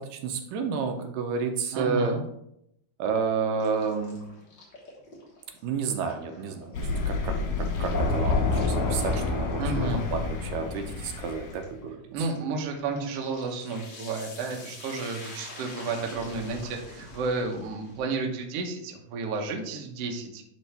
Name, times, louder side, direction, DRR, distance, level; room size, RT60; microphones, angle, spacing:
voice 1, 0.0-2.2 3.0-4.2 5.6-12.3, right 5 dB, 80° right, 5 dB, 2.3 m, -31 dB
voice 2, 1.7-2.2 9.6-10.0 12.1-20.4, right 4 dB, 65° right, 2 dB, 1.6 m, -32 dB
sound 1, 3.6-18.1, left 2 dB, 45° left, 1.9 m, -46 dB
Thunder, 6.7-11.6, left 3 dB, 85° left, 2.8 m, -28 dB
10.0 x 3.7 x 3.4 m, 0.78 s
omnidirectional pair, 3.8 m